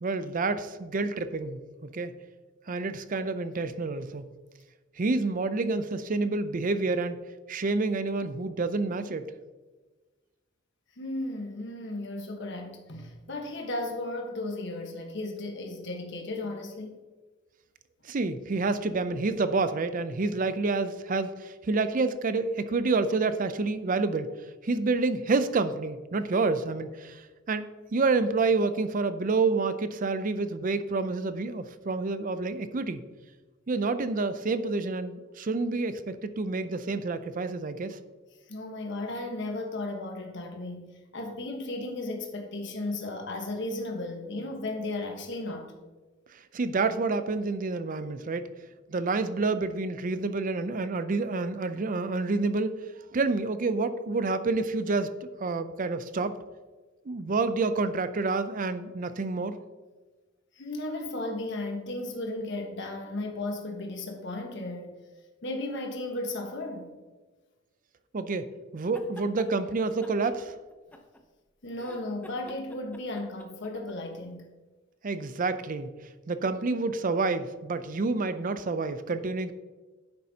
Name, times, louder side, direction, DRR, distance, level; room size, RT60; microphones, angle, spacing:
voice 1, 0.0-2.1 2.7-4.3 5.0-7.2 7.5-9.3 18.0-24.3 24.6-33.0 33.7-38.0 46.3-48.5 48.9-52.8 53.1-56.3 57.1-59.6 68.1-70.5 75.0-75.9 76.3-79.5, right 3 dB, 40° right, 0.5 m, -28 dB
voice 2, 11.0-17.0 38.5-45.7 60.5-65.0 65.4-66.9 71.6-74.5, left 2 dB, 60° left, 1.3 m, -35 dB
sound 1, 68.8-69.5 70.0-71.4 71.7-73.9, left 1 dB, 10° left, 0.7 m, -48 dB
9.7 x 7.5 x 2.8 m
head